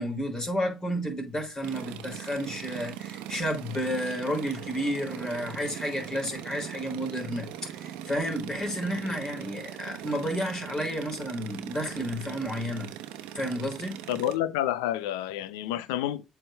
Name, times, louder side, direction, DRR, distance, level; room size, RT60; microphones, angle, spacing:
voice 1, 0.0-12.9 13.3-14.0, equal, 25° left, 3.8 m, -31 dB
sound 1, 1.6-14.4, right 11 dB, 85° right, 0.9 m, -40 dB
voice 2, 14.1-16.3, left 12 dB, 90° left, 0.6 m, -29 dB
7.8 x 3.6 x 4.3 m
supercardioid pair, 65°, 2 cm